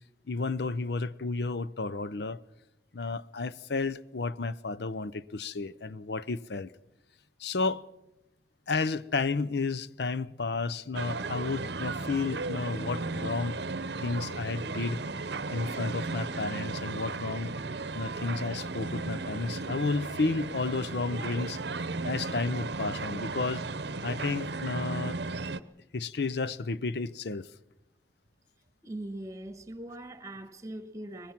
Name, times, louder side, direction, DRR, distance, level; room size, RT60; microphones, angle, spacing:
voice 1, 0.3-2.4 2.9-6.7 7.4-7.8 8.7-13.6 14.0-15.0 15.5-17.5 17.9-21.6 22.0-23.6 24.0-25.2 25.9-27.5, left 3 dB, 60° left, 0.7 m, -32 dB
sound 1, 10.9-25.6, right 3 dB, 65° right, 0.8 m, -35 dB
voice 2, 28.8-31.3, right 1 dB, 20° right, 1.4 m, -41 dB
23.5 x 20.5 x 5.9 m
head